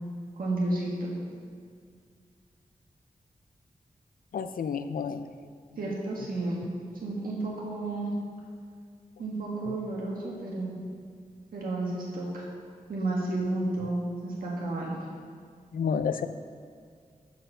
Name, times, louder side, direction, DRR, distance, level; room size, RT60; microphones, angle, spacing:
voice 1, 0.4-1.1 5.8-6.6 7.0-8.1 9.2-10.8 11.5-12.5 12.9-14.9, right 2 dB, 90° right, -4 dB, 1.6 m, -31 dB
voice 2, 4.3-5.3 15.7-16.3, left 6 dB, 85° left, 10 dB, 0.4 m, -30 dB
9.4 x 4.4 x 6.7 m, 2.2 s
wide cardioid pair, 120°, 14 cm